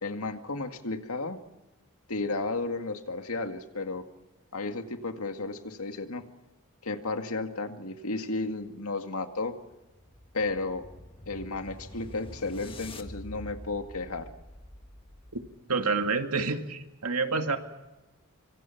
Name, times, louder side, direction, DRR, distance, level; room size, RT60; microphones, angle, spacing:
voice 1, 0.0-1.4 2.1-4.1 4.5-6.2 6.8-9.5 10.3-10.9 11.3-14.3, left 3 dB, 75° left, 6 dB, 2.1 m, -33 dB
sound 1, 9.6-15.7, left 1 dB, 25° left, 1.5 m, -46 dB
voice 2, 15.7-17.6, right 4 dB, 85° right, 6 dB, 2.3 m, -28 dB
25.5 x 25.0 x 5.9 m, 1.0 s
head